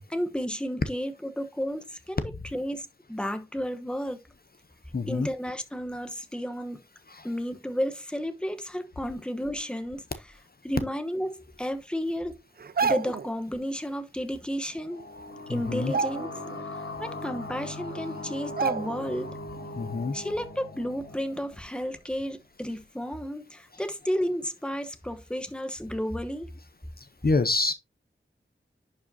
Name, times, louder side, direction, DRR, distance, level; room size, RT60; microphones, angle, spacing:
voice 1, 0.1-2.2 2.5-4.2 5.1-6.8 7.2-10.0 10.6-12.4 12.8-15.0 15.5-16.4 17.0-19.4 20.1-26.5, equal, 5° left, 1.0 m, -32 dB
voice 2, 4.9-5.3 7.1-7.3 15.5-15.9 19.8-20.1 27.0-27.7, left 3 dB, 45° left, 0.7 m, -27 dB
sound 1, 12.6-13.3 14.8-14.9 15.2-15.4 15.8-16.6 17.0-17.1 17.9-18.0 18.6-19.2 19.6-19.7, right 5 dB, 50° right, 0.4 m, -29 dB
sound 2, 14.7-22.1, left 2 dB, 80° left, 1.3 m, -40 dB
11.0 x 4.9 x 2.7 m
wide cardioid pair, 75°, 21 cm